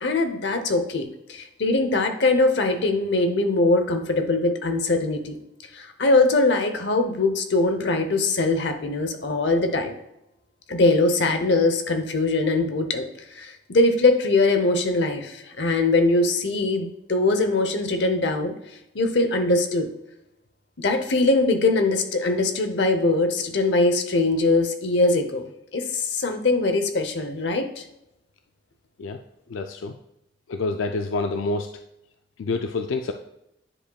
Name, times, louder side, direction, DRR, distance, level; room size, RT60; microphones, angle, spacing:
voice 1, 0.0-5.4 5.7-9.9 10.7-13.1 13.3-18.5 18.9-19.9 20.8-25.4 25.7-27.8, left 2 dB, 65° left, 7 dB, 0.8 m, -22 dB
voice 2, 29.5-29.9 30.5-31.7 32.4-33.1, left 3 dB, 90° left, 6 dB, 0.4 m, -27 dB
9.8 x 5.0 x 2.3 m, 0.87 s
head